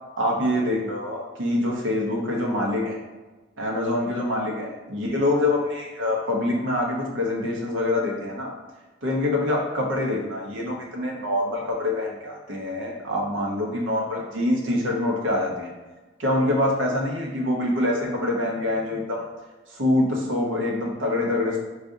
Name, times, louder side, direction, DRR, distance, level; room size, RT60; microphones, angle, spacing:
voice 1, 0.2-3.0 3.6-8.5 9.0-15.7 16.2-19.2 19.7-21.6, left 1 dB, 75° right, -1 dB, 0.8 m, -25 dB
4.8 x 2.4 x 2.6 m, 1.2 s
head